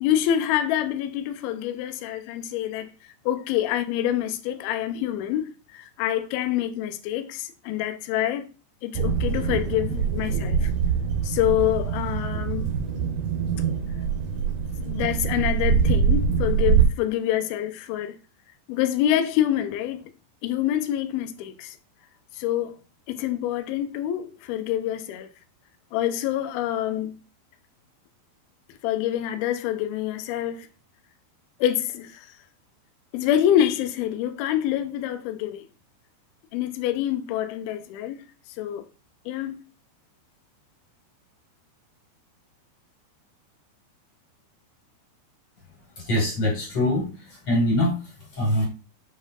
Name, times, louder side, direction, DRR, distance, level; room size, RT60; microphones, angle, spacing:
voice 1, 0.0-2.9 3.3-8.5 8.8-10.7 11.2-12.7 14.9-18.2 18.7-20.1 20.4-21.8 22.4-22.8 23.1-25.3 25.9-27.1 28.8-30.7 31.6-32.3 33.1-35.7 36.5-38.2 38.6-38.8 39.3-39.6, left 11 dB, 85° left, 2.2 m, -26 dB
sound 1, 8.9-16.8, right 7 dB, 65° right, 2.0 m, -24 dB
voice 2, 46.0-47.9 48.4-48.6, left 1 dB, 40° left, 2.5 m, -23 dB
7.4 x 5.2 x 2.5 m
omnidirectional pair, 5.1 m